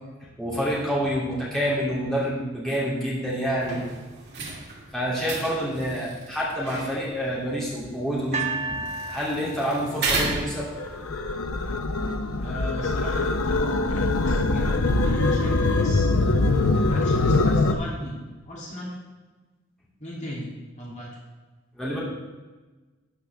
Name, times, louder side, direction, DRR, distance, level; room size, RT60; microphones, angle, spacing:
voice 1, 0.4-3.8 4.9-8.8 9.1-10.7 21.7-22.0, equal, ahead, -7 dB, 2.8 m, -27 dB
sound 1, 3.6-11.1, right 3 dB, 50° right, 2.6 m, -34 dB
sound 2, 8.3-11.5 12.3-12.4, right 3 dB, 30° right, 1.1 m, -34 dB
sound 3, 10.8-17.7, left 2 dB, 80° left, 0.8 m, -23 dB
voice 2, 12.4-16.0 16.7-18.2 18.5-19.0 20.0-20.5 20.8-21.1, equal, 35° left, -5 dB, 2.7 m, -35 dB
13.0 x 9.3 x 3.5 m, 1.2 s
head